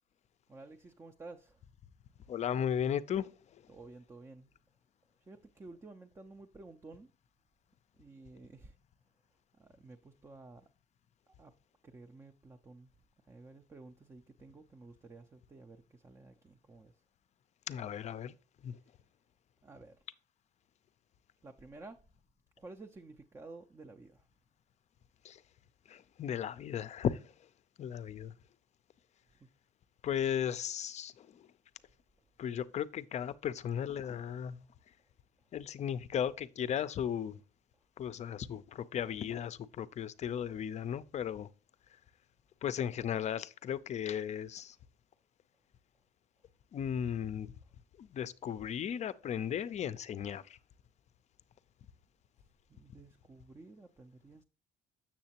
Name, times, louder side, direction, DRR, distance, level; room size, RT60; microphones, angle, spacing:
voice 1, 0.5-1.6 3.7-4.5 5.3-7.1 7.9-8.8 9.5-10.7 11.3-11.5 11.8-12.9 13.3-17.0 19.6-20.0 21.4-22.0 22.6-24.3 29.4-29.5 52.4-54.4, right 3 dB, 20° right, 0.5 m, -53 dB
voice 2, 2.3-3.7 17.7-18.8 25.2-25.4 25.9-27.5 27.8-28.4 30.0-31.5 32.4-34.9 35.5-37.4 38.0-41.5 41.9-42.0 42.6-44.8 46.7-47.5 48.0-50.6, left 9 dB, 40° left, 0.5 m, -36 dB
7.2 x 6.6 x 2.9 m
cardioid pair, 110°, 17 cm